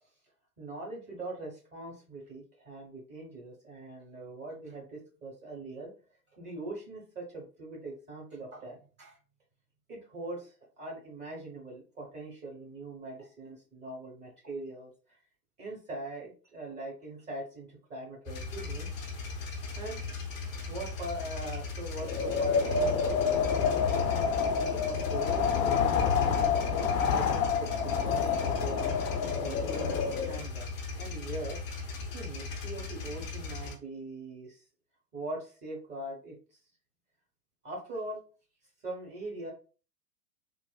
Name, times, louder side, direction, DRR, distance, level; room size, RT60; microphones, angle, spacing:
voice 1, 0.6-5.9 6.3-9.2 9.9-14.9 15.6-18.9 19.7-20.0 20.7-24.1 24.7-28.9 29.4-31.6 31.9-34.6 35.1-36.4 37.6-38.2 38.8-39.5, right 2 dB, 20° right, -2 dB, 1.1 m, -42 dB
sound 1, 18.3-33.7, left 4 dB, 20° left, 0.4 m, -38 dB
Wind, 22.0-30.4, left 6 dB, 80° left, 0.5 m, -28 dB
3.1 x 2.0 x 2.3 m, 0.37 s
figure-of-eight pair, 105°, 49 cm